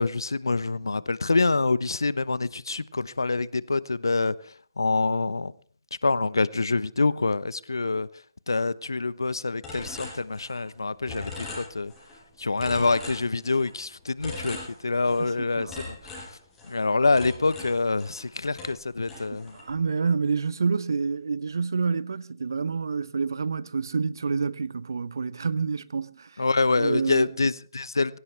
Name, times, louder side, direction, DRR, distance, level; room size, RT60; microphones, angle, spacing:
voice 1, 0.0-4.3 4.8-5.5 6.0-8.1 8.5-11.9 12.4-14.6 14.8-16.0 16.7-19.5 26.4-28.2, left 3 dB, 80° left, 1.0 m, -26 dB
sound 1, 9.6-10.8 11.1-12.2 12.6-13.8 14.2-15.3 15.7-18.3 18.6-19.7, left 3 dB, 10° left, 7.1 m, -40 dB
voice 2, 15.2-15.7 19.5-26.4 26.8-27.3, right 5 dB, 65° right, 0.9 m, -28 dB
22.0 x 17.0 x 3.4 m
figure-of-eight pair, 145°, 2 cm